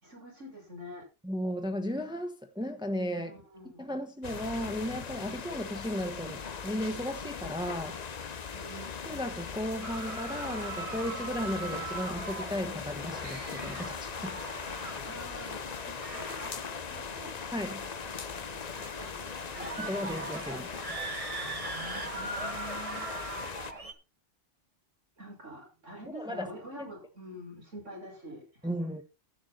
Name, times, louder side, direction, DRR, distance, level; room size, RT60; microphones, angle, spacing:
voice 1, 0.0-1.1 3.2-3.9 8.5-8.9 15.0-17.3 18.7-20.1 21.4-23.1 25.2-28.9, equal, 85° right, 5.9 m, -47 dB
voice 2, 1.2-3.3 3.8-8.0 9.1-14.4 17.5-17.9 19.8-20.8 26.1-26.5 28.6-29.0, equal, 5° right, 1.1 m, -35 dB
sound 1, 4.2-23.7, left 6 dB, 40° left, 0.8 m, -40 dB
sound 2, 9.8-23.9, right 3 dB, 30° right, 1.3 m, -41 dB
11.5 x 8.3 x 4.1 m
omnidirectional pair, 1.2 m